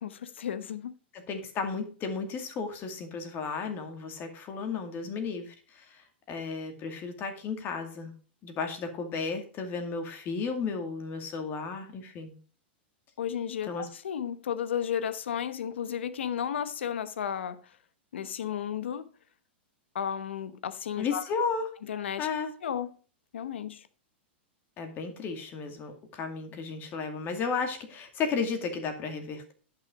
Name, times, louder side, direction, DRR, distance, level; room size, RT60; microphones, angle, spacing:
voice 1, 0.0-1.0 13.2-17.8 18.1-19.1 19.9-21.3 21.8-22.3 22.6-23.0 23.3-23.9, left 8 dB, 80° left, 0.9 m, -33 dB
voice 2, 1.1-8.1 8.4-12.3 13.7-13.9 21.0-21.7 22.2-22.5 24.8-29.5, left 5 dB, 35° left, 2.3 m, -34 dB
10.5 x 6.2 x 4.9 m
hypercardioid pair, 125°, 6 cm